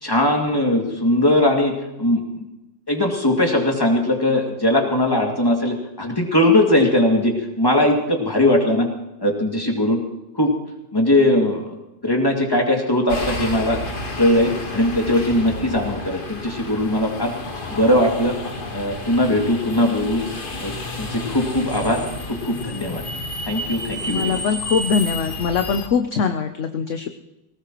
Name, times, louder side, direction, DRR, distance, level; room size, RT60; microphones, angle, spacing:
voice 1, 0.0-2.4 2.9-8.9 9.2-10.0 10.3-10.5 10.9-11.8 12.0-13.8 14.2-17.3 17.7-18.4 18.7-20.2 20.6-20.7 21.0-22.0 22.3-23.0 23.5-24.4, left 1 dB, 15° left, 1 dB, 2.3 m, -20 dB
sound 1, 13.1-25.9, left 2 dB, 35° left, 1.5 m, -31 dB
voice 2, 24.0-27.1, left 6 dB, 55° left, 7 dB, 1.0 m, -22 dB
19.5 x 18.5 x 3.1 m, 0.97 s
omnidirectional pair, 1.7 m